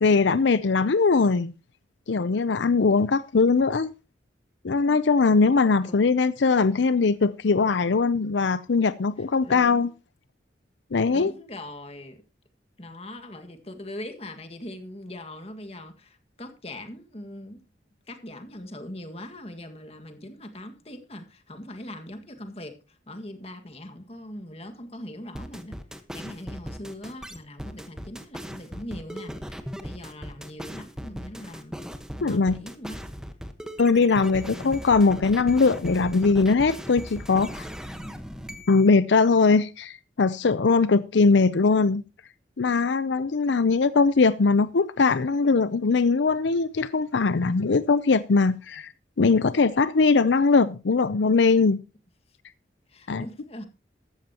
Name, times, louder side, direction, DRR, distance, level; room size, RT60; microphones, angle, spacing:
voice 1, 0.0-1.5 2.1-3.9 4.6-9.9 10.9-11.3 32.2-32.6 33.8-37.6 38.7-42.0 42.6-48.9 49.2-51.8 53.1-53.3, left 4 dB, 75° left, 0.6 m, -21 dB
voice 2, 9.4-9.9 11.1-12.2 12.8-17.6 18.1-31.8 32.2-33.0 34.4-34.8 37.8-38.3 52.9-53.7, left 1 dB, 35° left, 1.8 m, -41 dB
sound 1, 25.3-38.9, equal, 5° right, 1.2 m, -38 dB
14.5 x 13.0 x 2.9 m
head